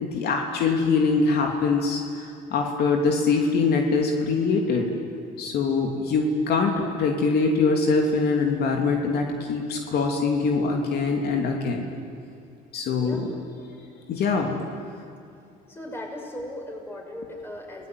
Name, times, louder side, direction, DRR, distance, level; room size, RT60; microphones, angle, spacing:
voice 1, 0.0-4.9 5.4-11.9 12.7-13.2 14.1-14.6, left 4 dB, 70° left, 1 dB, 3.1 m, -23 dB
voice 2, 13.0-13.4 15.7-17.9, left 1 dB, 15° left, 0 dB, 6.6 m, -37 dB
30.0 x 19.5 x 9.4 m, 2.5 s
cardioid pair, 110°, 17 cm